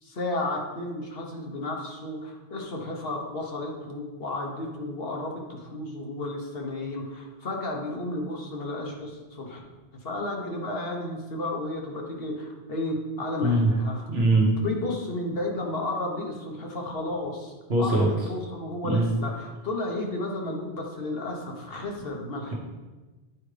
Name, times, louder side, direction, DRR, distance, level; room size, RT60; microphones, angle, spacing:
voice 1, 0.0-9.6 10.0-14.0 14.5-22.5, left 2 dB, 60° left, 0 dB, 1.2 m, -32 dB
voice 2, 14.1-14.5 17.7-18.1 18.8-19.1, right 2 dB, 70° right, -3 dB, 1.3 m, -21 dB
8.5 x 5.0 x 3.3 m, 1.2 s
omnidirectional pair, 1.1 m